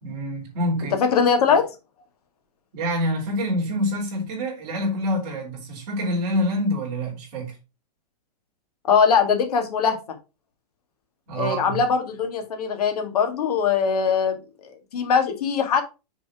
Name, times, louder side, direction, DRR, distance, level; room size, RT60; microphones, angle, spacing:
voice 1, 0.0-1.0 2.7-7.5 11.3-11.8, equal, 30° right, 2.9 m, -26 dB
voice 2, 1.0-1.7 8.9-10.0 11.4-14.4 14.9-15.8, left 6 dB, 70° left, 1.9 m, -21 dB
6.3 x 4.2 x 4.8 m
supercardioid pair, 170°, 20 cm